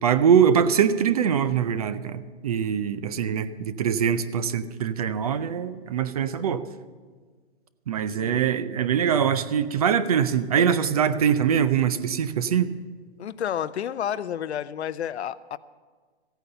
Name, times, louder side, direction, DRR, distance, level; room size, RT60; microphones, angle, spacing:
voice 1, 0.0-6.6 7.9-12.7, right 8 dB, 35° right, 14 dB, 0.5 m, -23 dB
voice 2, 13.2-15.6, left 9 dB, 80° left, 16 dB, 0.7 m, -30 dB
15.5 x 9.2 x 6.8 m, 1.5 s
hypercardioid pair, 160°, 33 cm